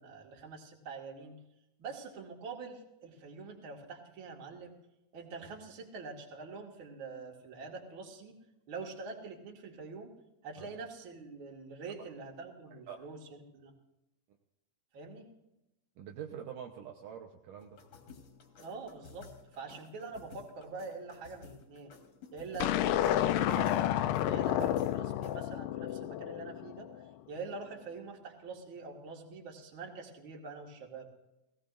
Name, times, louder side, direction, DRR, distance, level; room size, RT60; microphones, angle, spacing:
voice 1, 0.0-1.4 1.8-4.7 5.1-8.3 8.7-10.1 10.4-13.7 14.9-15.3 18.6-21.9 22.3-22.8 23.1-31.1, right 4 dB, 40° right, 0 dB, 2.3 m, -45 dB
voice 2, 16.0-17.8, right 9 dB, 75° right, 2 dB, 2.4 m, -45 dB
sound 1, 17.6-25.5, left 5 dB, 55° left, 2.3 m, -55 dB
sound 2, 22.6-27.0, left 12 dB, 80° left, 2.2 m, -30 dB
17.5 x 17.5 x 2.6 m, 0.91 s
omnidirectional pair, 4.1 m